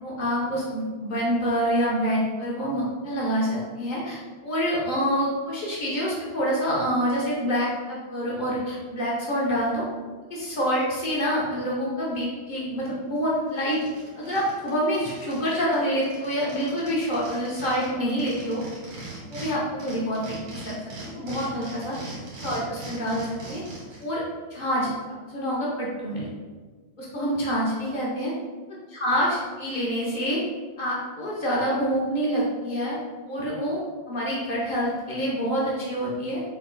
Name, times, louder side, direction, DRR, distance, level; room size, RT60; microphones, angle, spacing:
voice 1, 0.0-9.8 10.3-13.8 14.1-18.6 19.3-20.8 21.1-21.9 22.4-23.6 24.0-24.2 24.5-24.9 25.3-26.3 27.0-28.3 28.7-30.4 30.8-33.0 33.3-33.8 34.1-36.4, equal, 75° left, -6 dB, 0.4 m, -27 dB
sound 1, 13.2-13.3 13.6-15.5 15.7-15.8 16.0-19.5 19.8-24.0, right 2 dB, 80° right, 2.3 m, -40 dB
6.4 x 3.7 x 2.2 m, 1.4 s
omnidirectional pair, 2.2 m